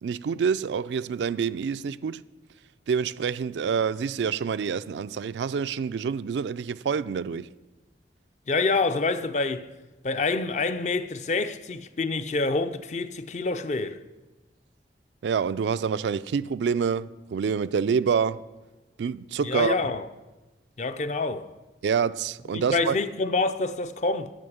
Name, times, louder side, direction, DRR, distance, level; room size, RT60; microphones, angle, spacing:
voice 1, 0.0-2.2 2.9-7.5 15.2-18.4 19.0-19.8 21.8-23.0, right 6 dB, 80° right, 0.3 m, -27 dB
voice 2, 8.5-9.7 10.0-14.0 19.4-20.1 20.8-21.5 22.5-24.3, left 3 dB, 40° left, 0.5 m, -27 dB
9.0 x 6.0 x 7.9 m
head